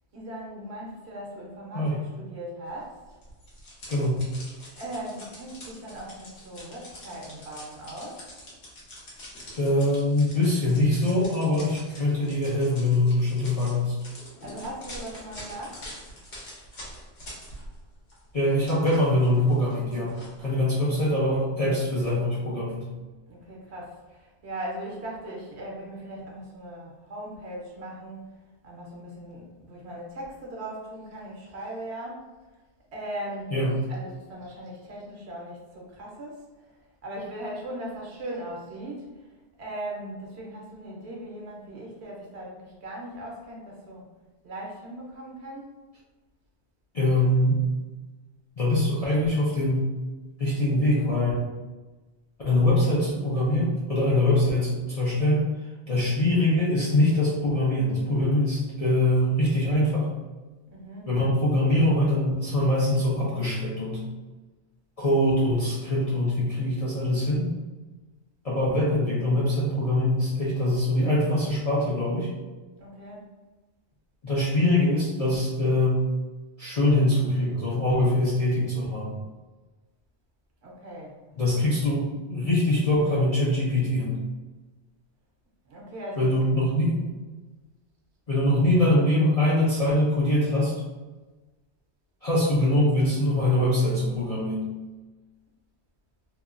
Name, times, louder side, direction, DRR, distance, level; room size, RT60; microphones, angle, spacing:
voice 1, 0.1-2.9 4.7-8.2 14.4-15.8 23.3-28.3 28.6-32.2 32.9-33.5 33.9-39.3 39.6-44.0 44.4-45.7 60.7-61.1 72.8-73.2 80.6-81.2 85.7-86.3, right 1 dB, 70° right, -2 dB, 0.9 m, -39 dB
sound 1, 3.2-17.8 18.1-21.1, left 1 dB, 70° left, 1.1 m, -45 dB
voice 2, 3.9-4.2 9.5-13.9 18.3-22.9 33.5-33.8 46.9-47.6 48.6-49.9 50.4-51.5 52.4-55.5 55.9-60.1 61.1-64.0 65.0-67.5 68.4-72.3 74.2-76.0 76.6-79.2 81.4-84.2 86.2-87.0 88.3-90.7 92.2-94.7, left 1 dB, 50° left, -7 dB, 0.4 m, -23 dB
2.8 x 2.2 x 2.4 m, 1.2 s
omnidirectional pair, 1.2 m